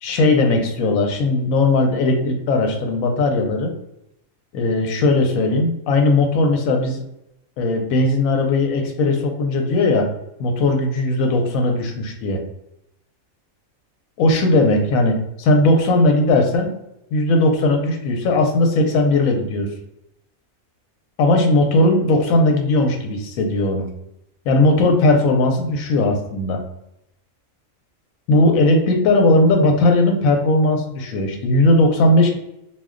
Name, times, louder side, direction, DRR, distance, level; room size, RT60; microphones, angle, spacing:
voice 1, 0.0-3.7 4.5-7.0 7.6-10.1 10.4-12.4 14.2-16.7 17.1-19.7 21.2-23.9 24.5-26.6 28.3-32.3, left 2 dB, 90° left, 3 dB, 1.0 m, -18 dB
2.3 x 2.2 x 3.5 m, 0.84 s
omnidirectional pair, 1.4 m